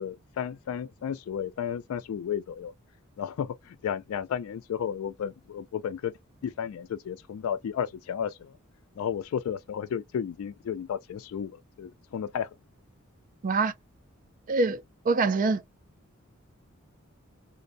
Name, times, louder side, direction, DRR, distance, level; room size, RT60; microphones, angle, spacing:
voice 1, 0.0-2.7 3.2-6.1 6.4-8.5 9.0-12.5, left 8 dB, 80° left, 0.3 m, -33 dB
voice 2, 13.4-13.7 14.5-15.6, right 3 dB, 40° right, 0.4 m, -25 dB
2.5 x 2.1 x 2.5 m
head